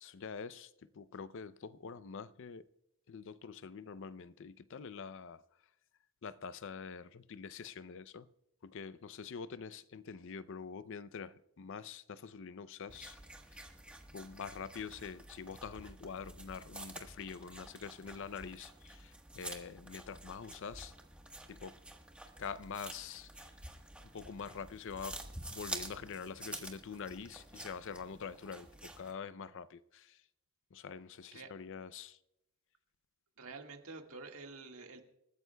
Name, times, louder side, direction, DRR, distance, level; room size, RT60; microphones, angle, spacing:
voice 1, 0.0-2.7 3.1-5.4 6.2-8.3 8.6-13.2 13.5-13.6 14.1-20.9 21.5-21.8 22.4-23.5 24.1-25.2 25.5-30.2 30.7-32.2, left 6 dB, 60° left, 0.5 m, -45 dB
sound 1, 12.9-29.1, right 1 dB, 5° right, 1.2 m, -49 dB
voice 2, 33.4-35.0, right 3 dB, 70° right, 1.8 m, -48 dB
28.5 x 14.0 x 2.2 m
head